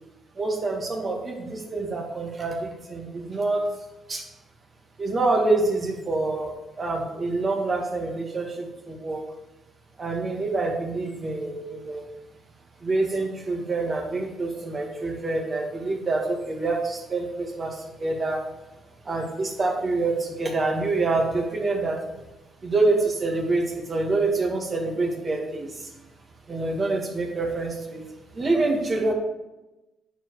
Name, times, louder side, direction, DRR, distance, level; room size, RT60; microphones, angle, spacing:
voice 1, 0.3-3.7 4.1-4.2 5.0-9.2 10.0-12.0 12.8-18.4 19.0-22.0 22.6-25.9 26.5-28.0 28.3-29.1, right 3 dB, 35° right, 1 dB, 1.8 m, -26 dB
9.0 x 4.9 x 4.8 m, 1.0 s
cardioid pair, 90°, 0 cm